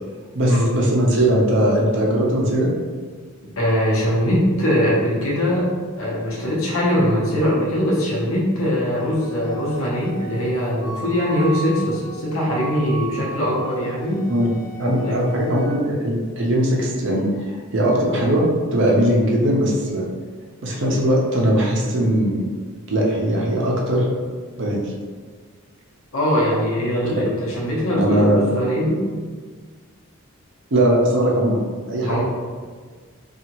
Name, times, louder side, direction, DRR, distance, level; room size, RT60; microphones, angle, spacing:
voice 1, 0.3-2.7 14.3-14.5 14.8-18.5 18.7-20.0 20.6-22.4 22.9-24.1 24.6-24.9 28.0-28.4 30.7-31.6 31.9-32.2, right 1 dB, 55° right, -2 dB, 0.5 m, -19 dB
voice 2, 3.6-5.7 6.0-14.3 15.0-15.2 26.1-29.0 32.1-32.2, equal, 70° left, -5 dB, 0.8 m, -21 dB
Wind instrument woodwind instrument, 8.9-15.8, right 1 dB, 25° right, 0.9 m, -37 dB
2.7 x 2.4 x 2.8 m, 1.5 s
head